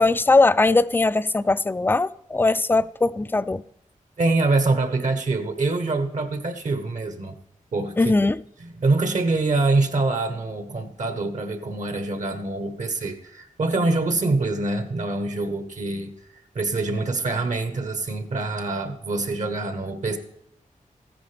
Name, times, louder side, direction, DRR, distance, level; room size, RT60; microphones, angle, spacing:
voice 1, 0.0-3.6 8.0-8.4, left 3 dB, 15° left, 0.3 m, -20 dB
voice 2, 4.2-7.3 7.7-8.1 8.8-20.2, right 3 dB, 65° right, 1.2 m, -25 dB
14.5 x 10.0 x 3.4 m
wide cardioid pair, 110°, 14 cm